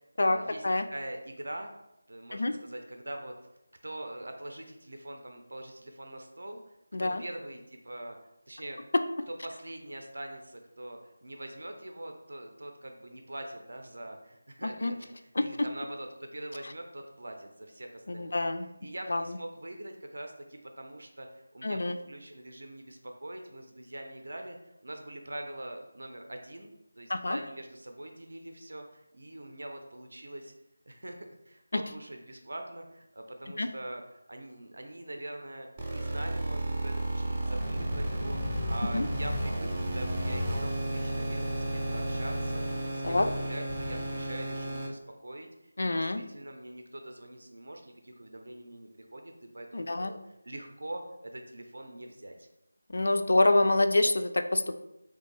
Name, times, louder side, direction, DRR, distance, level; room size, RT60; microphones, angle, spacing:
voice 1, 0.0-1.7 2.1-3.3 3.8-6.7 7.0-8.2 8.5-8.8 9.4-18.4 18.8-30.5 30.9-34.0 34.3-38.4 38.7-45.5 45.8-50.2 50.4-52.5, right 1 dB, 75° right, 4 dB, 0.5 m, -43 dB
voice 2, 14.6-14.9 15.4-15.5 18.1-18.7 19.1-19.4 21.6-22.0 27.1-27.4 31.7-31.8 33.6-33.7 38.9-39.1 43.0-43.3 45.8-46.2 49.7-50.1 52.9-54.8, left 2 dB, 65° left, 8 dB, 0.3 m, -26 dB
sound 1, 35.8-44.9, right 1 dB, 20° right, 0.5 m, -32 dB
3.3 x 2.5 x 3.2 m, 0.88 s
figure-of-eight pair, 170°, 0 cm